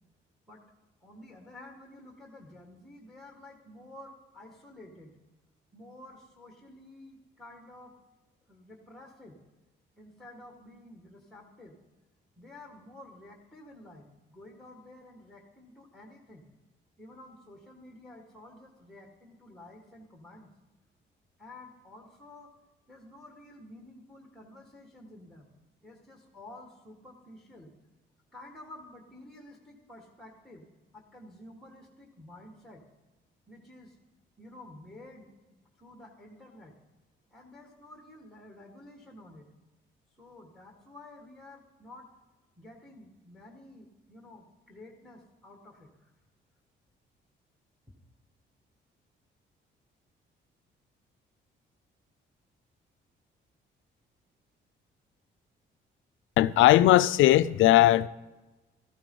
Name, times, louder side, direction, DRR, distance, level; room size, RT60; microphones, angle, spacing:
voice 1, 1.0-5.1 5.7-7.9 8.5-9.4 10.0-11.8 12.4-16.5 17.0-20.5 21.4-22.5 22.9-25.5 25.8-27.7 28.3-32.8 33.5-34.0 34.4-36.7 37.3-39.5 40.2-42.1 42.6-46.1, left 1 dB, ahead, 1.9 m, -51 dB
voice 2, 56.4-58.1, left 14 dB, 80° left, 0.4 m, -19 dB
14.0 x 12.0 x 3.8 m
cardioid pair, 90°, 20 cm